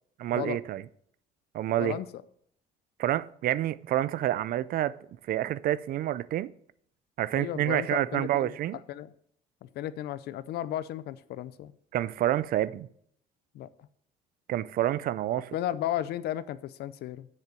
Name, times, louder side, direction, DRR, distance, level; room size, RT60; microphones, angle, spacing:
voice 1, 0.2-0.8 1.5-2.0 3.0-5.0 5.3-6.5 7.2-8.8 11.9-12.9 14.5-15.5, right 13 dB, 60° right, 0.5 m, -28 dB
voice 2, 1.8-2.2 7.3-8.6 8.9-9.1 9.6-11.7 13.5-13.7 15.5-17.3, left 12 dB, 70° left, 0.6 m, -34 dB
7.5 x 6.6 x 6.7 m
cardioid pair, 110°, 17 cm